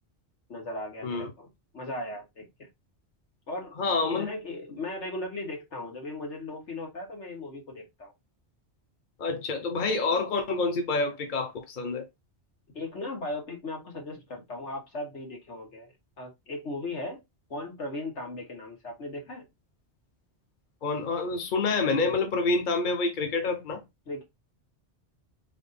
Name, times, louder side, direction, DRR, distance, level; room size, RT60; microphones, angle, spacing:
voice 1, 0.5-1.5 1.7-2.5 3.5-8.1 12.7-17.2 17.5-19.5 24.1-24.2, left 2 dB, 85° left, 1.8 m, -37 dB
voice 2, 3.8-4.3 9.2-12.0 20.8-23.8, left 3 dB, 50° left, 1.0 m, -27 dB
3.8 x 3.5 x 4.0 m
omnidirectional pair, 1.2 m